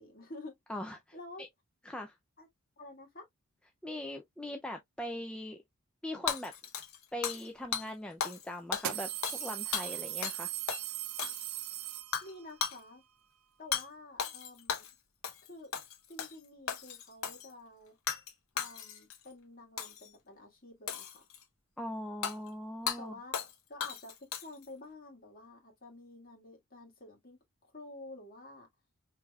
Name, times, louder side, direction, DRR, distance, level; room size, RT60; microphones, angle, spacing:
voice 1, 0.0-0.6 1.1-1.5 2.4-2.5 2.8-3.2 12.2-13.0 13.6-14.9 15.4-15.7 16.1-18.0 18.5-21.3 23.0-23.4 23.7-28.7, left 2 dB, 40° left, 1.7 m, -50 dB
voice 2, 1.9-2.2 3.8-5.6 6.0-6.5 7.1-10.5 21.8-23.1, left 1 dB, 5° left, 0.4 m, -40 dB
Hammer / Shatter, 6.3-7.5 7.7-7.9 8.2-8.5 8.7-10.4 10.7-10.8 11.2-11.7 12.1-12.3 12.6-12.8 13.7-13.9 14.2-14.9 15.2-15.5 15.7-16.4 16.7-17.5 18.1-18.3 18.6-19.2 19.8-20.1 20.9-21.4 22.2-22.4 22.9-23.0 23.3-23.5 23.8-24.7, left 7 dB, 65° left, 1.0 m, -36 dB
sound 1, 7.6-7.7 8.7-12.5, right 13 dB, 70° right, 0.5 m, -39 dB
4.9 x 3.2 x 2.3 m
head